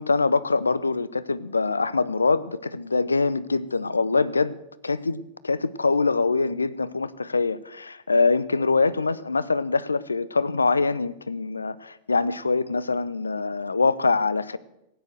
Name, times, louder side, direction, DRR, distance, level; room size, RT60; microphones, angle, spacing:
voice 1, 0.0-4.6 4.8-14.6, left 4 dB, 80° left, 18 dB, 0.6 m, -24 dB
16.0 x 9.2 x 7.7 m, 0.86 s
figure-of-eight pair, 90°, 0 cm